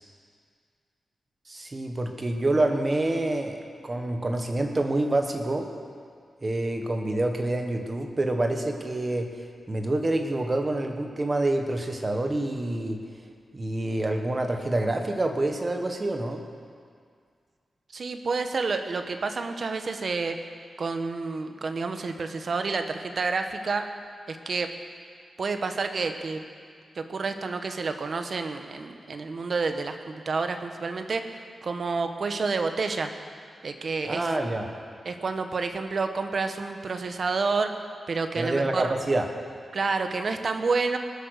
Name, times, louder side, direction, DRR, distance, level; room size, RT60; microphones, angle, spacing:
voice 1, 1.5-5.7 6.4-13.0 13.5-16.4 34.0-34.7 38.3-39.3, right 2 dB, 25° right, 4 dB, 1.3 m, -27 dB
voice 2, 17.9-20.4 20.8-23.9 24.3-24.7 25.4-26.4 26.9-31.2 31.6-33.1 33.6-34.2 35.0-37.7 38.1-38.9 39.7-41.0, right 4 dB, 45° right, 7 dB, 1.0 m, -29 dB
20.0 x 10.5 x 6.5 m, 2.1 s
wide cardioid pair, 175°, 0 cm